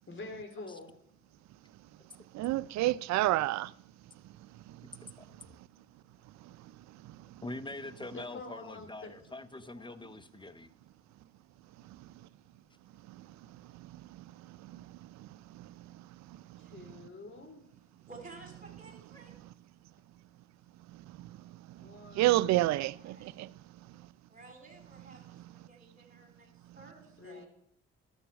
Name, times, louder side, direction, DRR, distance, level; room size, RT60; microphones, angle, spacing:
voice 1, 0.1-0.9 8.1-9.1 9.8-10.1 16.6-17.6 21.8-22.5 27.2-27.5, left 3 dB, 40° left, 3.1 m, -46 dB
voice 2, 1.2-1.5 3.9-7.1 10.3-11.1 16.8-19.3 22.7-23.5 23.8-24.0 24.3-27.5, right 3 dB, 30° right, 4.2 m, -58 dB
voice 3, 2.3-3.7 22.2-23.5, right 16 dB, 65° right, 0.5 m, -28 dB
voice 4, 7.4-10.7, left 2 dB, 15° left, 0.9 m, -44 dB
11.5 x 7.2 x 6.2 m
hypercardioid pair, 55°, 29 cm